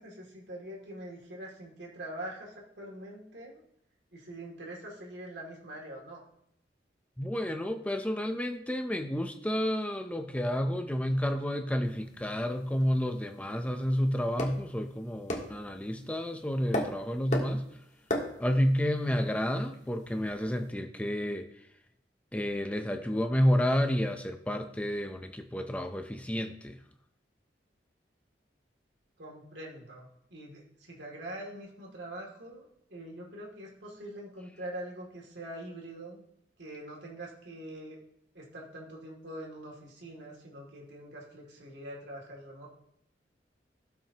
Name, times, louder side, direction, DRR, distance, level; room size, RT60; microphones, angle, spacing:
voice 1, 0.0-3.6 4.1-6.2 29.2-36.2 36.6-38.0 38.3-42.7, right 1 dB, 75° right, -2 dB, 2.5 m, -44 dB
voice 2, 7.2-17.7 18.4-21.5 22.3-26.8, equal, 10° left, 6 dB, 0.6 m, -30 dB
sound 1, 11.8-20.7, left 1 dB, 40° left, 1.7 m, -39 dB
17.5 x 6.0 x 2.9 m, 0.73 s
head